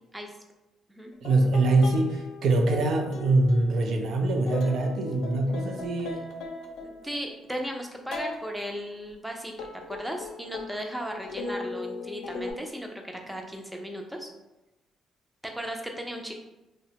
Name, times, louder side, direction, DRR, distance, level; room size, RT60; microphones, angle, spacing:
sound 1, 1.2-7.4 8.1-8.4 9.6-12.5, left 3 dB, 85° left, 0.4 m, -38 dB
voice 1, 1.2-6.2, right 2 dB, 70° right, 3 dB, 0.4 m, -24 dB
voice 2, 6.8-14.3 15.4-16.3, equal, 5° right, 2 dB, 0.5 m, -36 dB
2.8 x 2.1 x 2.8 m, 0.97 s
cardioid pair, 90°, 0 cm